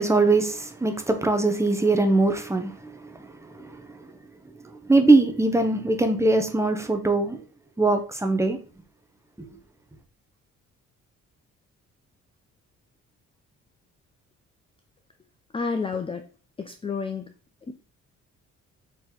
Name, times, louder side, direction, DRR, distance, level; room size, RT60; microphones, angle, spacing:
voice 1, 0.0-3.0 3.6-3.8 4.9-7.4 7.8-8.6, right 2 dB, 10° right, 0.8 m, -21 dB
voice 2, 15.5-16.3 16.6-17.3 17.7-17.8, left 5 dB, 20° left, 0.4 m, -30 dB
4.5 x 3.0 x 3.8 m
cardioid pair, 90°, 30 cm